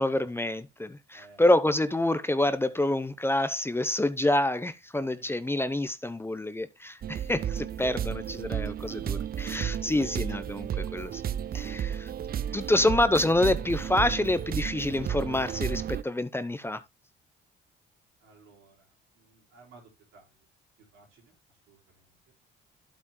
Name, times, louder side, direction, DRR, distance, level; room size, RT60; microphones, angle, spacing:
voice 1, 0.0-11.2 11.5-12.1 12.5-16.8, left 1 dB, 10° left, 0.8 m, -27 dB
voice 2, 1.1-1.4 5.2-5.4 12.9-13.0 18.2-20.5 20.8-21.4 21.7-22.2, right 3 dB, 90° right, 4.2 m, -57 dB
sound 1, 7.0-16.0, right 9 dB, 50° right, 0.5 m, -33 dB
11.5 x 8.5 x 2.2 m
cardioid pair, 90°, 20 cm